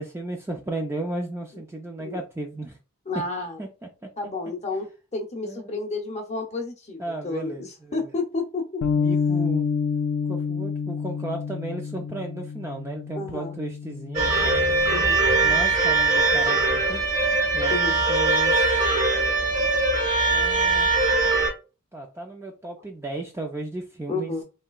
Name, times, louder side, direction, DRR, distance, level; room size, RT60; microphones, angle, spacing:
voice 1, 0.0-2.8 3.1-3.2 3.6-3.7 5.4-5.6 7.0-8.0 9.0-9.7 10.3-14.6 15.4-17.0 17.5-17.7 18.1-18.8 20.3-20.9 21.9-24.3, right 2 dB, 10° right, 0.3 m, -34 dB
voice 2, 3.1-3.6 4.2-8.8 13.2-13.6 14.9-15.3 17.7-18.0 24.1-24.4, left 3 dB, 30° left, 0.7 m, -31 dB
Bass guitar, 8.8-15.1, left 5 dB, 85° left, 0.4 m, -28 dB
sound 1, 14.1-21.5, right 3 dB, 35° right, 0.9 m, -21 dB
3.3 x 2.8 x 2.3 m
head